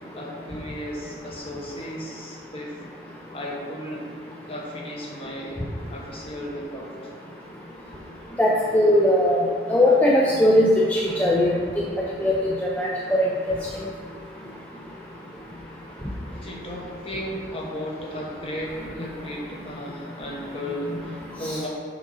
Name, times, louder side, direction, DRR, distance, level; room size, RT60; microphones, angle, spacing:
voice 1, 0.1-2.8 3.3-4.1 4.5-5.6 5.9-6.9 16.4-21.7, equal, 30° left, -2 dB, 1.1 m, -35 dB
voice 2, 8.4-9.4 9.7-11.5 12.2-12.5 12.8-12.9 13.2-13.3 21.4-21.5, left 1 dB, 10° left, -5 dB, 0.4 m, -19 dB
6.2 x 3.8 x 5.4 m, 2.2 s
head